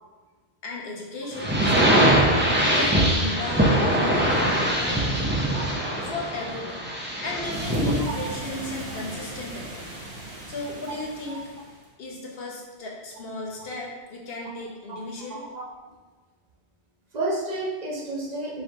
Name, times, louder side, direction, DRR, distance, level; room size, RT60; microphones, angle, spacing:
voice 1, 0.6-2.2 2.5-5.4 6.0-6.9 7.2-9.9 10.5-11.5 12.0-15.4, left 2 dB, 60° left, -2 dB, 1.0 m, -35 dB
sound 1, 1.3-8.0, right 1 dB, 15° right, 0.4 m, -22 dB
sound 2, 7.5-11.8, right 1 dB, 60° right, 1.1 m, -38 dB
voice 2, 15.3-15.7 17.1-18.6, right 2 dB, 45° right, -2 dB, 0.8 m, -31 dB
4.7 x 3.0 x 3.3 m, 1.4 s
omnidirectional pair, 1.1 m